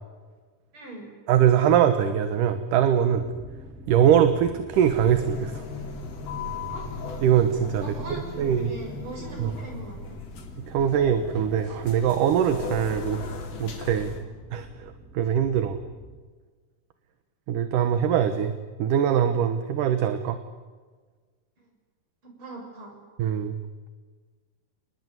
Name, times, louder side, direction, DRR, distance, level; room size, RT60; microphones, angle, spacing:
voice 1, 0.7-1.1 6.7-7.0 7.8-10.2 21.6-21.7 22.2-22.9, right 2 dB, 30° right, 2 dB, 7.7 m, -40 dB
voice 2, 1.3-3.3 3.9-5.6 7.2-7.9 8.4-8.7 9.4-9.5 10.7-13.2 13.6-14.1 14.5-15.8 17.5-18.5 18.8-20.4 23.2-23.6, right 9 dB, 65° right, 9 dB, 2.5 m, -22 dB
sound 1, 3.1-16.2, left 1 dB, ahead, 2.8 m, -46 dB
sound 2, 4.7-14.2, left 3 dB, 80° left, 5.3 m, -37 dB
29.0 x 20.5 x 9.6 m, 1.5 s
omnidirectional pair, 4.4 m